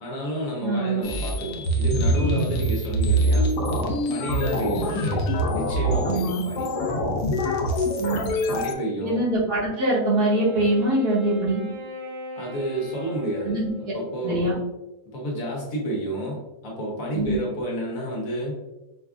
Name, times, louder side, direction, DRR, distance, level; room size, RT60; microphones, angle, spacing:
voice 1, 0.0-3.5 4.1-6.7 8.5-9.2 12.4-13.6 13.9-14.6 15.1-18.6, right 1 dB, 60° left, -3 dB, 1.2 m, -30 dB
voice 2, 0.6-1.0 6.0-6.4 8.0-8.2 9.0-11.6 13.4-13.7 14.2-14.5 17.1-17.4, right 1 dB, 70° right, -7 dB, 1.7 m, -23 dB
sound 1, 1.0-8.7, equal, 80° left, 1.2 m, -24 dB
Wind instrument woodwind instrument, 10.1-14.6, left 1 dB, 50° right, 1.0 m, -39 dB
4.5 x 2.4 x 2.4 m, 0.95 s
omnidirectional pair, 1.7 m